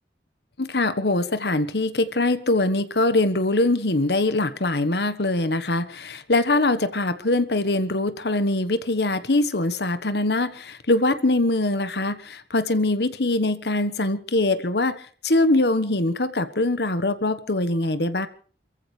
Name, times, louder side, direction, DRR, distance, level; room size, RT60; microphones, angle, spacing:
voice 1, 0.6-14.9 15.2-18.3, left 2 dB, 65° left, 12 dB, 1.3 m, -23 dB
28.5 x 15.0 x 3.3 m, 0.42 s
head